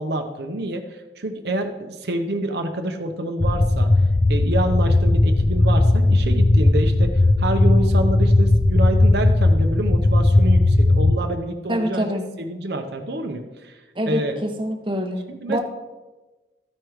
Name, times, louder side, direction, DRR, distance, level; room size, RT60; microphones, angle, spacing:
voice 1, 0.0-3.9 4.3-12.1 12.4-13.8 14.1-14.4 15.3-15.6, right 1 dB, 70° right, 5 dB, 0.8 m, -27 dB
sound 1, 3.4-11.2, left 2 dB, 25° left, 0.3 m, -17 dB
voice 2, 11.7-12.2 13.9-15.6, equal, 25° right, 4 dB, 0.9 m, -25 dB
13.5 x 4.7 x 4.9 m, 1.1 s
head